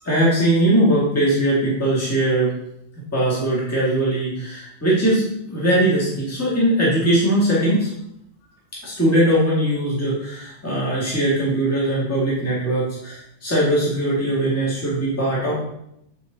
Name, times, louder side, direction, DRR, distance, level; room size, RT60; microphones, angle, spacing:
voice 1, 0.0-2.5 3.0-7.9 8.8-15.6, right 1 dB, 10° left, -7 dB, 1.8 m, -20 dB
9.2 x 3.9 x 3.8 m, 0.78 s
omnidirectional pair, 1.2 m